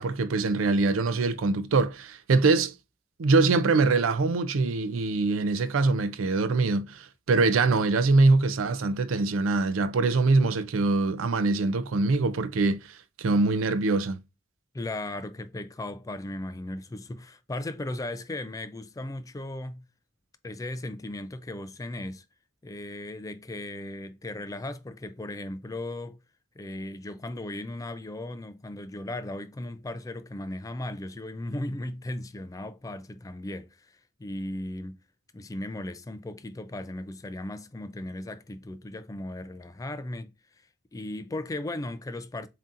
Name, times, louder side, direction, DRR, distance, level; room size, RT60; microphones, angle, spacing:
voice 1, 0.0-2.7 3.2-14.2, right 3 dB, 85° right, 0.5 m, -23 dB
voice 2, 14.7-19.8 20.4-22.2 22.6-26.2 26.6-35.0 35.3-40.3 40.9-42.5, left 1 dB, 15° left, 0.4 m, -36 dB
7.3 x 2.8 x 2.5 m
head